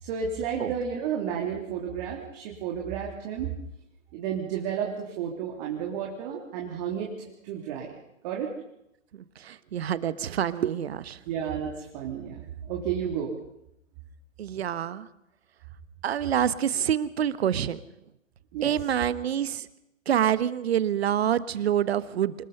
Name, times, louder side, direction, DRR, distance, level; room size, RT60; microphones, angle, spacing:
voice 1, 0.0-3.5 4.1-7.1 7.4-7.9 8.2-8.5 11.3-13.3 18.5-18.7, right 8 dB, 30° right, 0 dB, 3.3 m, -32 dB
voice 2, 9.1-11.2 14.4-15.1 16.0-17.8 18.6-19.7 20.1-22.3, right 10 dB, 50° right, 16 dB, 1.2 m, -27 dB
26.5 x 19.5 x 5.5 m, 0.82 s
figure-of-eight pair, 135°, 40 cm